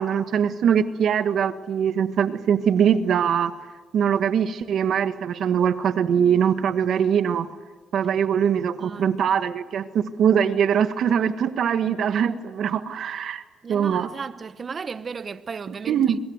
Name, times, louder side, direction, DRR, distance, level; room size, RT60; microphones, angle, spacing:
voice 1, 0.0-3.5 3.9-7.5 7.9-13.4 13.7-14.1 15.9-16.2, right 8 dB, 65° right, 1.6 m, -22 dB
voice 2, 8.8-9.1 13.6-16.0, right 5 dB, 40° right, 1.1 m, -34 dB
25.0 x 22.0 x 8.1 m
cardioid pair, 90°, 0 cm